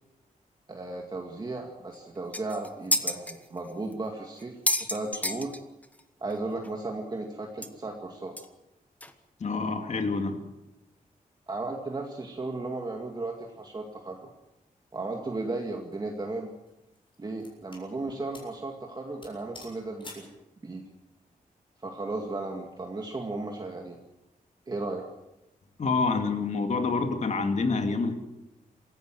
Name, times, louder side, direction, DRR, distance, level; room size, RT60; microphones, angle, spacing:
voice 1, 0.7-4.6 4.9-5.5 6.2-8.3 11.5-14.2 14.9-16.5 17.2-20.3 20.6-20.9 21.8-24.0 24.7-25.1, right 2 dB, 30° right, 1 dB, 2.3 m, -35 dB
sound 1, 1.9-2.0 2.3-3.4 3.9-4.0 4.4-6.0 6.3-6.4 6.6-6.7 7.6-7.7 8.4-8.5 9.0-9.1, left 1 dB, 10° left, 1.4 m, -29 dB
voice 2, 9.4-10.4 25.8-28.2, left 4 dB, 50° left, 6 dB, 2.6 m, -27 dB
sound 2, 15.7-15.9 16.7-17.9 18.3-18.6 18.9-19.0 19.2-20.3, left 2 dB, 35° left, 7.4 m, -49 dB
27.0 x 16.0 x 7.8 m, 0.93 s
wide cardioid pair, 165°, 15 cm